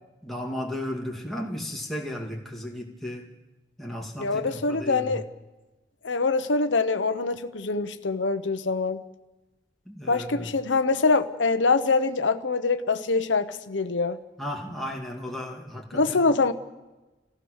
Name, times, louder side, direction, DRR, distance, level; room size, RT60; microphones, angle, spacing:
voice 1, 0.2-3.3 3.8-5.2 9.9-10.5 14.4-16.3, left 1 dB, ahead, -2 dB, 2.5 m, -35 dB
voice 2, 4.2-5.3 6.0-9.0 10.1-14.2 15.9-16.5, left 3 dB, 85° left, 9 dB, 0.9 m, -24 dB
27.0 x 15.5 x 6.5 m, 1.1 s
head